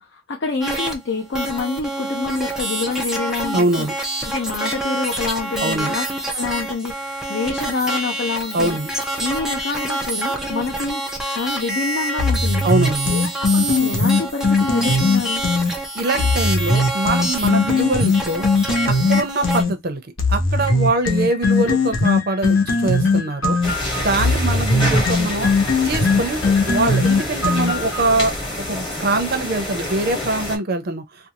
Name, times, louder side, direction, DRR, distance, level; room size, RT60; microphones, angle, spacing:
voice 1, 0.0-3.9 4.2-6.1 6.3-8.8 9.2-12.7 13.1-15.4, left 4 dB, 60° left, 0.6 m, -27 dB
sound 1, 0.6-0.9 1.3-19.6, right 1 dB, 5° right, 0.5 m, -27 dB
voice 2, 3.5-3.9 5.6-6.0 8.5-8.9 12.6-13.1 15.9-18.5 18.8-20.0 20.3-23.6 24.0-25.5 25.8-28.3 28.7-31.0, right 2 dB, 50° right, 0.6 m, -23 dB
sound 2, 12.2-15.7 16.2-19.7 20.2-28.0, left 3 dB, 80° left, 0.9 m, -19 dB
sound 3, 23.6-30.6, left 1 dB, 25° left, 1.0 m, -26 dB
2.5 x 2.3 x 2.8 m
head